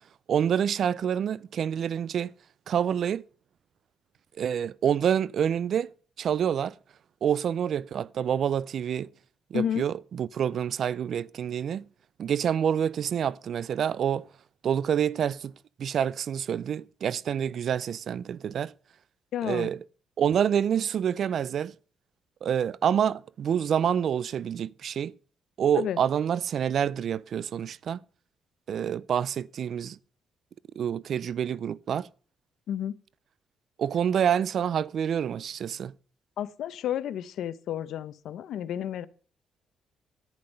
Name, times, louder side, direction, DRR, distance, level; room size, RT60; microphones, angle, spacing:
voice 1, 0.3-2.3 2.7-3.2 4.4-5.9 6.2-6.7 7.2-9.1 9.5-11.9 12.2-14.3 14.6-15.5 15.8-18.7 19.4-19.8 20.2-21.7 22.4-25.1 25.6-28.0 28.7-30.0 30.8-32.1 33.8-35.9, right 8 dB, 60° right, 0.4 m, -27 dB
voice 2, 9.5-9.8 19.3-19.7 25.7-26.0 32.7-33.0 36.4-39.1, left 10 dB, 75° left, 0.8 m, -31 dB
10.5 x 9.8 x 5.3 m
cardioid pair, 90°, 0 cm